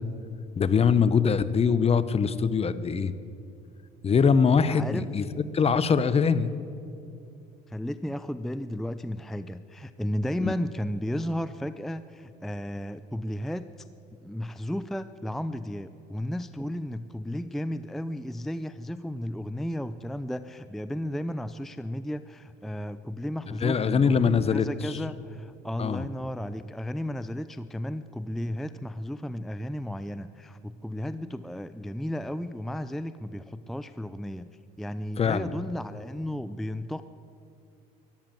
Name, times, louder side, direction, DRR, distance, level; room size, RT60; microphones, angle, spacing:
voice 1, 0.6-3.1 4.0-6.5 10.4-10.5 23.5-24.9 25.8-26.1 35.2-35.5, left 6 dB, 30° left, 15 dB, 0.8 m, -23 dB
voice 2, 4.7-5.1 7.7-13.7 14.2-34.5 34.8-37.0, equal, ahead, 13 dB, 0.4 m, -34 dB
13.0 x 12.5 x 7.6 m, 2.6 s
supercardioid pair, 85°, 20 cm